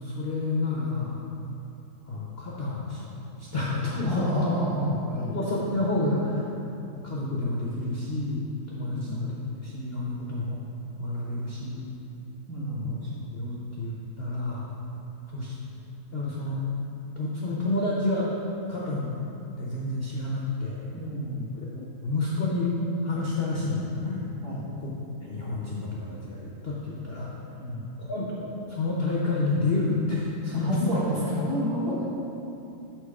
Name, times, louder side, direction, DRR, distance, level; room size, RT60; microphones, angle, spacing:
voice 1, 0.0-1.2 2.1-3.0 3.4-4.5 5.3-6.4 7.0-9.3 9.6-10.6 11.0-11.9 12.8-13.0 13.3-14.7 15.3-15.5 16.1-16.6 17.2-18.3 18.7-19.1 19.6-20.8 21.7-24.3 24.8-24.9 25.2-27.3 28.0-30.9, left 2 dB, 65° left, -5 dB, 0.6 m, -29 dB
voice 2, 4.0-5.4 8.9-9.2 12.5-13.0 20.9-21.5 24.4-24.7 27.6-27.9 30.5-32.1, equal, 50° right, -8 dB, 1.9 m, -30 dB
7.3 x 4.5 x 4.9 m, 2.9 s
omnidirectional pair, 2.3 m